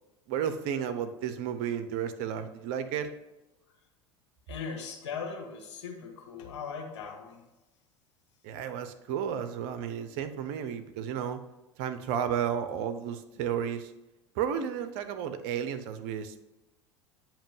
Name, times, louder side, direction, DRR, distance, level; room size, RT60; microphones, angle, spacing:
voice 1, 0.3-3.1 8.4-11.4 11.8-13.9 14.3-16.4, right 8 dB, 60° right, 10 dB, 0.7 m, -32 dB
voice 2, 4.5-7.4, left 5 dB, 75° left, 2 dB, 1.4 m, -39 dB
8.7 x 3.0 x 5.5 m, 0.99 s
hypercardioid pair, 80°, 15 cm